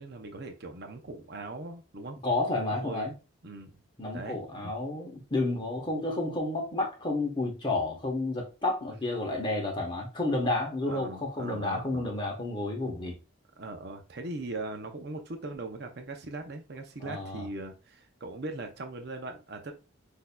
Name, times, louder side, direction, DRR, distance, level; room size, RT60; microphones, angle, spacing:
voice 1, 0.0-2.2 2.7-3.1 3.4-3.8 4.1-4.7 10.9-12.1 13.6-19.7, right 2 dB, 55° right, 0.6 m, -40 dB
voice 2, 2.2-3.1 4.0-13.2 17.0-17.5, left 2 dB, 25° left, 1.1 m, -31 dB
6.1 x 2.7 x 2.2 m
head